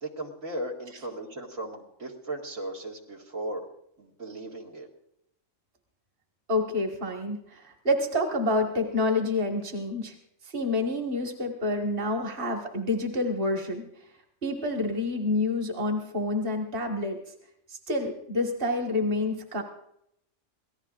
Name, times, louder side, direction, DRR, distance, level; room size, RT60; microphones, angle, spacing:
voice 1, 0.0-3.7 4.0-4.9, right 1 dB, 75° right, -1 dB, 2.4 m, -37 dB
voice 2, 6.5-10.1 10.5-13.8 14.4-17.2 17.7-19.6, left 2 dB, 40° right, 2 dB, 1.8 m, -28 dB
26.0 x 18.0 x 2.5 m, 0.76 s
omnidirectional pair, 1.4 m